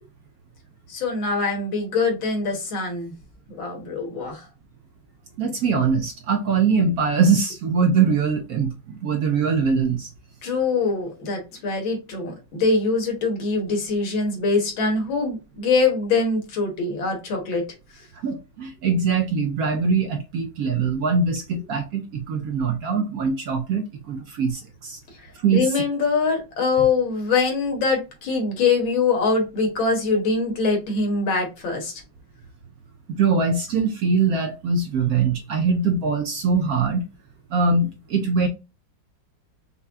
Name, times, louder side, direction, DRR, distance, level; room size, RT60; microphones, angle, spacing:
voice 1, 0.9-3.1 3.5-4.5 10.4-17.6 25.5-31.9, left 4 dB, 85° left, 2.2 m, -23 dB
voice 2, 5.4-10.1 18.2-25.0 25.4-25.7 33.1-37.0 37.5-38.5, right 5 dB, 65° right, 1.0 m, -22 dB
5.5 x 2.3 x 3.6 m
omnidirectional pair, 2.1 m